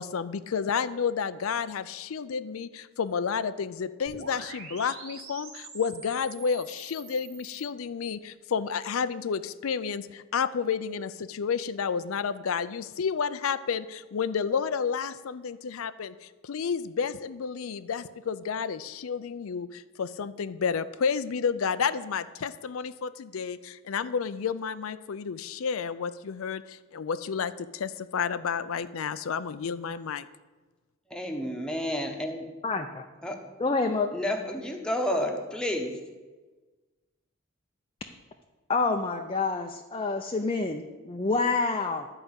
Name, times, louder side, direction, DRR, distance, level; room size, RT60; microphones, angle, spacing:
voice 1, 0.0-30.3, left 6 dB, 90° left, 13 dB, 0.5 m, -31 dB
sound 1, 4.1-7.7, right 3 dB, 85° right, 2.4 m, -45 dB
voice 2, 31.1-32.4 33.2-33.3 34.1-35.9, left 1 dB, 5° left, 2 dB, 1.1 m, -30 dB
voice 3, 32.6-33.0 33.6-34.1 38.7-42.1, left 3 dB, 25° left, 4 dB, 0.5 m, -27 dB
11.5 x 4.9 x 8.0 m, 1.3 s
head